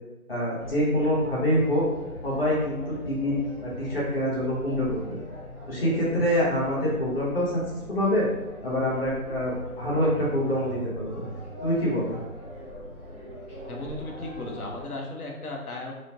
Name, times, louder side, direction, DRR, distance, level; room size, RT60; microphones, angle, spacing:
voice 1, 0.3-1.8 2.2-3.3 3.6-5.2 5.7-7.6 7.9-8.3 8.6-11.2 11.6-12.2, equal, 40° left, -7 dB, 1.0 m, -25 dB
sound 1, 0.6-14.8, equal, 25° left, 1.3 m, -41 dB
voice 2, 13.7-15.9, left 2 dB, 75° left, 0 dB, 0.9 m, -36 dB
3.0 x 2.1 x 2.8 m, 1.1 s
figure-of-eight pair, 160°, 44 cm